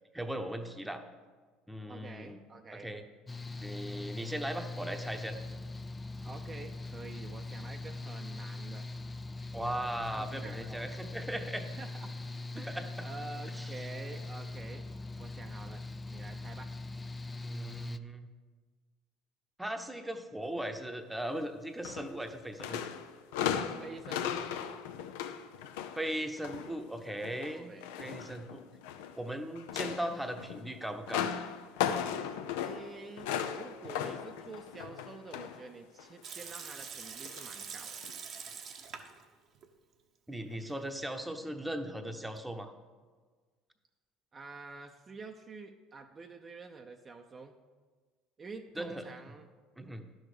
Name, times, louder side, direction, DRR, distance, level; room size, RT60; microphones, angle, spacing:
voice 1, 0.1-1.0 1.7-2.4 2.7-3.0 3.6-5.4 9.5-11.7 12.7-13.1 13.5-13.7 17.4-18.3 19.6-22.8 25.9-27.7 28.0-28.6 29.2-31.3 40.3-42.7 48.8-49.0 49.8-50.0, right 1 dB, 5° right, 6 dB, 0.9 m, -38 dB
voice 2, 1.9-2.9 6.2-8.9 10.1-10.9 11.6-12.1 12.5-14.8 15.2-16.8 23.8-24.4 27.5-27.9 32.6-38.0 44.3-47.6 48.4-49.5, right 4 dB, 30° right, 4 dB, 0.7 m, -48 dB
Mechanical fan, 3.3-18.0, left 2 dB, 20° left, 0.4 m, -41 dB
sound 1, 21.8-22.3 22.6-26.7 27.1-29.2 29.6-35.7 36.0-36.2 37.3-37.4 38.0-38.1, left 8 dB, 80° left, 0.6 m, -37 dB
Water tap faucet / Sink (filling or washing) / Liquid, 36.2-39.2 39.6-39.7 40.3-40.9, right 6 dB, 50° right, 1.0 m, -45 dB
10.5 x 6.4 x 5.0 m, 1.4 s
supercardioid pair, 80°, 0 cm